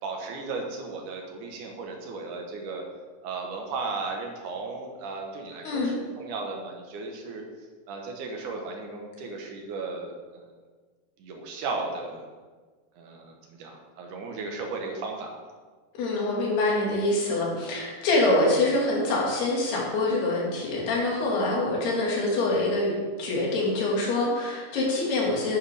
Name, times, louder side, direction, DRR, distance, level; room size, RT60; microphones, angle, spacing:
voice 1, 0.0-2.8 3.2-7.4 7.9-10.5 11.2-12.3 13.0-15.3, right 3 dB, 65° right, 1 dB, 2.5 m, -35 dB
voice 2, 16.0-22.9 23.2-25.6, left 2 dB, 85° left, -3 dB, 4.2 m, -25 dB
9.7 x 9.7 x 3.6 m, 1.4 s
omnidirectional pair, 4.4 m